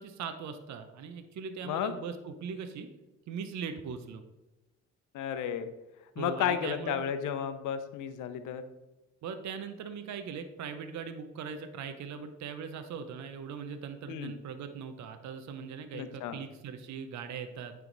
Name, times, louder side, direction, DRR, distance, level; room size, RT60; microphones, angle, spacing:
voice 1, 0.0-2.9 3.3-4.2 6.2-7.0 9.2-17.7, right 6 dB, 65° right, 8 dB, 0.7 m, -40 dB
voice 2, 5.1-5.7 6.2-8.6 14.1-14.3 15.9-16.4, left 9 dB, 85° left, 10 dB, 0.7 m, -33 dB
9.0 x 3.5 x 3.9 m, 1.0 s
cardioid pair, 90°, 30 cm